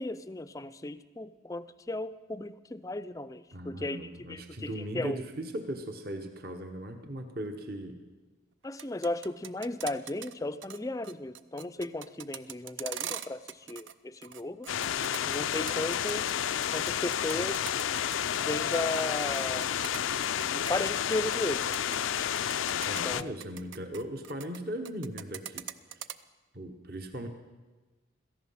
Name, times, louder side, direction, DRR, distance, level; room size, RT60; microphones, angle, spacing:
voice 1, 0.0-4.0 4.3-5.2 8.6-14.7 15.3-16.4 16.7-17.7 18.4-19.7 20.5-21.7 23.0-23.3, left 2 dB, 15° left, 13 dB, 0.4 m, -35 dB
voice 2, 3.5-8.0 22.9-25.7 25.9-26.0 26.5-27.3, right 1 dB, 50° right, 6 dB, 1.2 m, -38 dB
sound 1, 8.6-10.3 10.6-10.8 11.0-13.9 14.2-16.3 16.6-21.4 21.6-22.0 22.4-24.6 24.8-26.1, right 10 dB, 70° right, 0.6 m, -41 dB
sound 2, 14.7-23.2, left 9 dB, 80° left, 0.4 m, -30 dB
17.0 x 14.0 x 5.7 m, 1.2 s
head